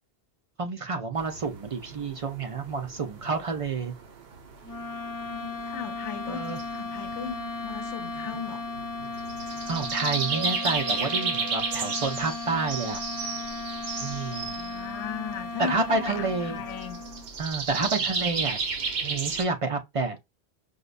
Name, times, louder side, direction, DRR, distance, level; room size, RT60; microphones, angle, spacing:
voice 1, 0.6-3.9 6.3-6.6 9.7-13.0 14.0-14.6 15.6-16.6 17.4-18.6 19.0-20.2, right 3 dB, 50° right, 0.4 m, -29 dB
sound 1, 1.2-19.4, right 4 dB, 70° right, 1.0 m, -34 dB
sound 2, 4.6-17.3, left 3 dB, 30° left, 0.4 m, -36 dB
voice 2, 5.2-8.6 14.4-17.0 17.8-18.1, left 8 dB, 85° left, 0.9 m, -38 dB
5.0 x 2.1 x 2.4 m
omnidirectional pair, 1.1 m